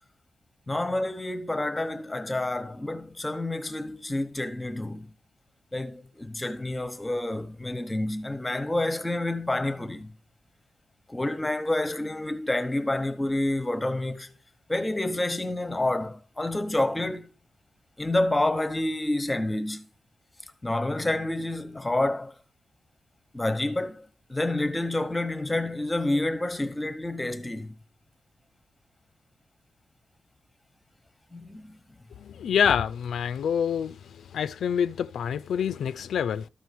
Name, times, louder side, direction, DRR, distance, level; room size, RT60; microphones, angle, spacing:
voice 1, 0.7-5.1 5.7-10.1 11.1-14.3 14.7-17.3 18.0-19.9 20.6-22.3 23.3-27.8 31.3-31.8, left 1 dB, 10° left, 1.0 m, -28 dB
voice 2, 32.2-36.5, left 8 dB, 85° left, 0.4 m, -27 dB
13.0 x 4.6 x 7.0 m
wide cardioid pair, 170°, 0 cm